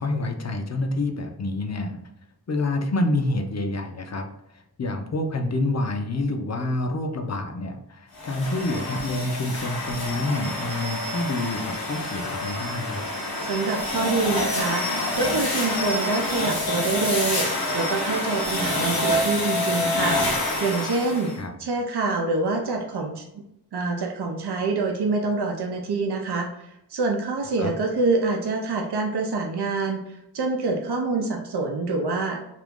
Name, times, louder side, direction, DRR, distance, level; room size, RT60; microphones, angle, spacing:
voice 1, 0.0-2.0 2.5-4.3 4.8-13.0 21.4-21.5 27.6-27.7, left 2 dB, 45° left, 5 dB, 0.5 m, -27 dB
sound 1, 8.2-21.4, left 1 dB, 65° left, 0.9 m, -27 dB
voice 2, 13.4-20.2 20.6-21.3 21.6-23.2 23.7-30.0 30.3-32.4, right 3 dB, 90° right, 1 dB, 0.5 m, -26 dB
2.8 x 2.5 x 3.5 m, 0.82 s
wide cardioid pair, 60°, 38 cm